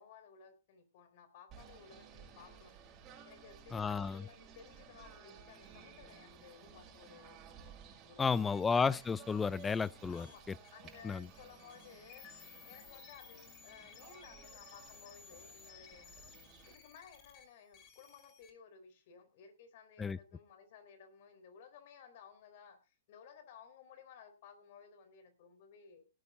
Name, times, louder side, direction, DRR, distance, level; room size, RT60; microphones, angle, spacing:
voice 1, 0.0-2.7 3.2-7.4 8.0-8.6 10.1-10.4 10.7-12.2 12.6-16.2 16.6-26.0, left 7 dB, 55° left, 9 dB, 4.1 m, -57 dB
Singing / Bird, 1.5-16.7, right 7 dB, 30° right, 6.0 m, -57 dB
voice 2, 3.7-4.2 8.2-10.3 11.0-11.3 20.0-20.2, left 5 dB, 10° left, 22 dB, 0.6 m, -32 dB
sound 1, 8.5-18.5, left 8 dB, 35° left, 3.1 m, -58 dB
18.0 x 9.4 x 3.8 m, 0.30 s
hypercardioid pair, 135°, 0 cm